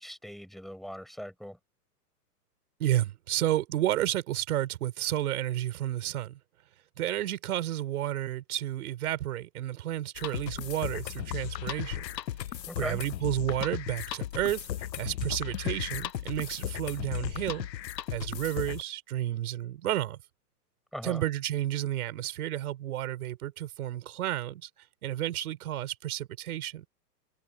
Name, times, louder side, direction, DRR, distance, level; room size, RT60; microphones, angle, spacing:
voice 1, 0.0-1.6 12.7-13.0 20.9-21.2, equal, ahead, 6.9 m, -39 dB
voice 2, 2.8-6.4 7.0-12.0 12.8-14.6 15.0-17.7 18.1-20.2 21.0-24.7 25.0-26.9, right 13 dB, 60° right, 4.0 m, -31 dB
sound 1, 10.2-18.8, left 11 dB, 85° left, 0.8 m, -36 dB
hypercardioid pair, 135°, 48 cm